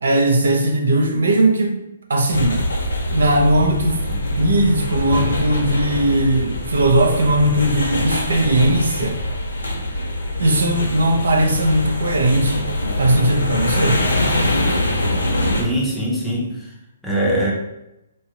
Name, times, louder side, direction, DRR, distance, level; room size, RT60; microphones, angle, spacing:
voice 1, 0.0-1.8 2.1-2.6 3.1-4.1 4.4-9.2 10.4-12.7 13.0-14.0, right 1 dB, 80° right, 2 dB, 0.6 m, -18 dB
sound 1, 2.3-15.6, left 1 dB, 90° left, 0.8 m, -23 dB
voice 2, 15.6-16.7 17.0-17.5, right 1 dB, 5° left, -5 dB, 0.6 m, -22 dB
3.1 x 2.4 x 2.8 m, 0.89 s
hypercardioid pair, 150°, 0 cm